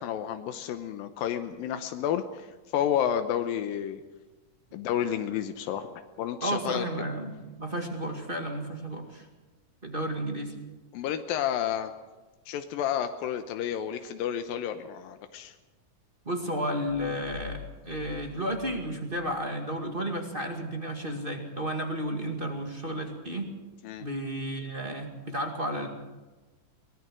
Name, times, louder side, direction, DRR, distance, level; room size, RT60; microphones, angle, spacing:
voice 1, 0.0-4.0 4.7-6.9 10.9-11.9 12.5-15.5 23.8-24.1, left 10 dB, 85° left, 8 dB, 2.7 m, -31 dB
voice 2, 6.4-9.2 9.8-10.5 16.2-23.5 24.0-25.9, equal, 20° right, 3 dB, 1.5 m, -32 dB
sound 1, 16.9-19.5, left 11 dB, 65° left, 2.2 m, -46 dB
23.0 x 18.5 x 6.3 m, 1.2 s
omnidirectional pair, 4.0 m